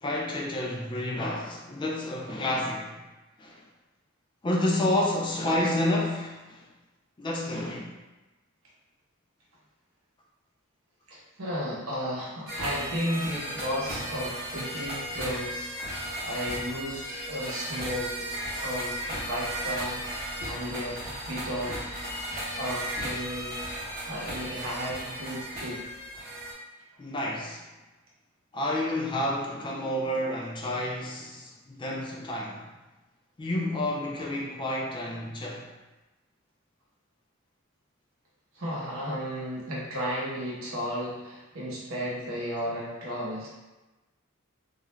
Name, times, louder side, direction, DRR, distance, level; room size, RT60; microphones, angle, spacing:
voice 1, 0.0-3.0 3.4-3.6 4.4-6.7 7.2-7.9 27.0-27.6 28.5-32.6 33.4-35.7, left 1 dB, 25° left, -2 dB, 0.3 m, -29 dB
voice 2, 11.1-18.3 18.6-21.9 22.6-23.7 24.1-25.8 38.5-43.5, equal, 75° right, -5 dB, 0.8 m, -34 dB
sound 1, 12.5-26.5, right 1 dB, 45° right, 0.8 m, -35 dB
2.3 x 2.0 x 3.1 m, 1.1 s
head